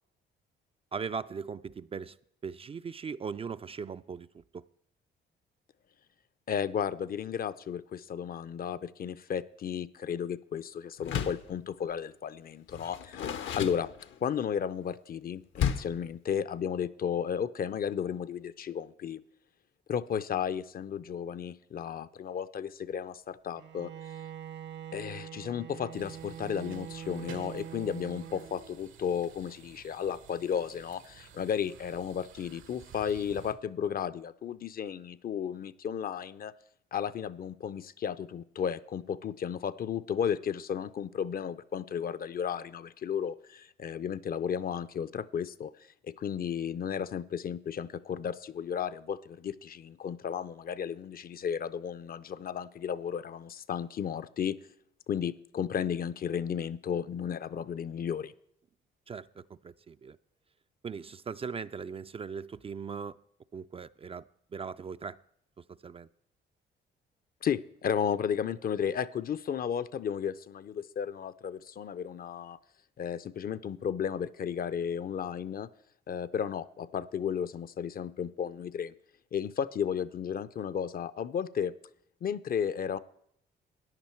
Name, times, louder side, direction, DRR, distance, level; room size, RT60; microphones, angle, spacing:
voice 1, 0.9-2.2 2.4-4.6 59.1-60.2 60.8-63.2 63.5-64.3 64.5-65.2 65.6-66.1, right 6 dB, 30° right, 13 dB, 0.3 m, -39 dB
voice 2, 6.5-13.9 14.2-19.2 19.9-23.9 24.9-36.5 36.9-45.7 46.0-54.6 55.1-58.3 67.4-72.6 73.0-75.7 76.1-78.9 79.3-81.7 82.2-83.0, left 8 dB, 50° left, 16 dB, 0.5 m, -34 dB
Door, 11.0-11.5 12.7-14.4 15.5-16.0, left 8 dB, 75° left, 0.9 m, -33 dB
Bowed string instrument, 23.6-28.9, right 9 dB, 65° right, 0.7 m, -44 dB
sound 1, 25.9-33.5, right 8 dB, 85° right, 1.2 m, -53 dB
14.0 x 10.0 x 4.4 m, 0.72 s
cardioid pair, 90°, 20 cm